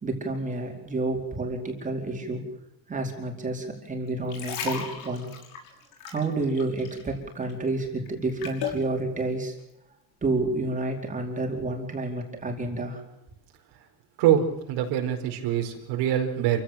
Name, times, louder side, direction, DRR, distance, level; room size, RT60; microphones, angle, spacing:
voice 1, 0.0-2.4 2.9-5.3 6.1-9.6 10.2-13.0, right 2 dB, 20° right, 1 dB, 4.7 m, -29 dB
sound 1, 4.1-7.1 7.4-8.8 9.4-9.6, left 7 dB, 60° left, 6.0 m, -35 dB
voice 2, 14.2-16.6, right 10 dB, 80° right, 3 dB, 5.0 m, -24 dB
28.5 x 16.5 x 7.7 m, 0.89 s
cardioid pair, 160°, 41 cm